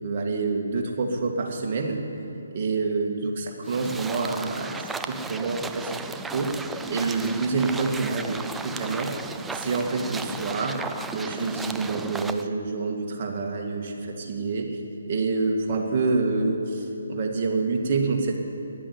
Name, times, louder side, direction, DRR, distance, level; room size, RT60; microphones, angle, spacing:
voice 1, 0.0-2.0 2.5-6.0 6.3-6.6 6.9-9.1 9.5-10.8 11.1-14.8 15.1-18.4, right 3 dB, 40° right, 1 dB, 2.1 m, -27 dB
sound 1, 3.7-12.5, right 4 dB, 5° right, 0.4 m, -35 dB
13.5 x 11.0 x 8.3 m, 2.8 s
figure-of-eight pair, 150°, 0 cm